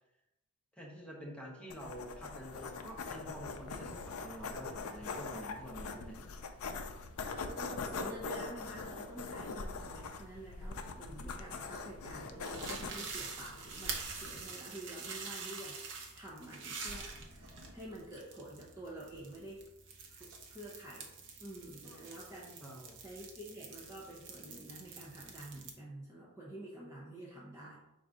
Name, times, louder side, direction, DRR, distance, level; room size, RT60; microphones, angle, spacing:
voice 1, 0.7-6.4 21.8-22.0 22.6-23.0, equal, 5° left, -3 dB, 1.0 m, -48 dB
sound 1, 1.7-14.4, left 4 dB, 75° left, 0.5 m, -43 dB
voice 2, 7.2-19.6 20.1-21.1 21.4-22.6 23.0-27.8, right 1 dB, 15° right, -6 dB, 0.6 m, -48 dB
sound 2, 12.4-25.7, right 4 dB, 60° right, 0.7 m, -46 dB
3.9 x 2.6 x 4.8 m, 0.92 s
head